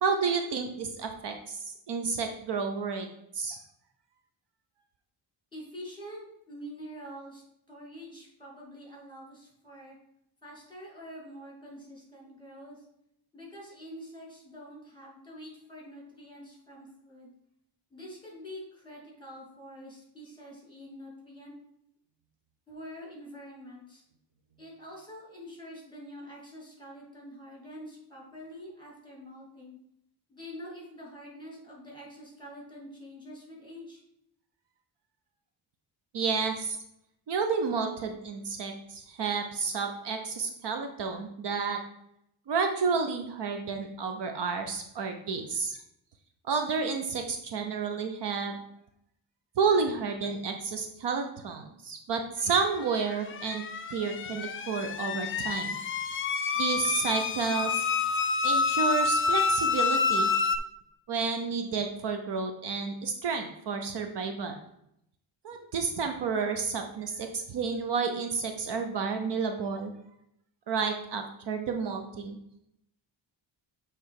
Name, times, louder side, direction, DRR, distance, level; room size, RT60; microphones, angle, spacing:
voice 1, 0.0-3.1 3.3-3.6 36.1-36.8 37.3-41.8 42.5-45.8 46.5-48.6 49.6-53.6 53.9-55.8 56.6-57.9 58.4-60.3 61.1-64.6 65.4-69.9 70.7-72.4, right 5 dB, 60° right, 5 dB, 0.8 m, -30 dB
voice 2, 5.5-7.4 7.7-9.9 10.4-12.9 13.3-17.3 17.9-21.5 22.7-24.0 24.6-29.8 30.3-34.0, equal, 10° left, -3 dB, 2.5 m, -46 dB
sound 1, 53.0-60.6, left 5 dB, 30° left, 0.4 m, -28 dB
7.6 x 3.3 x 4.8 m, 0.77 s
cardioid pair, 130°, 46 cm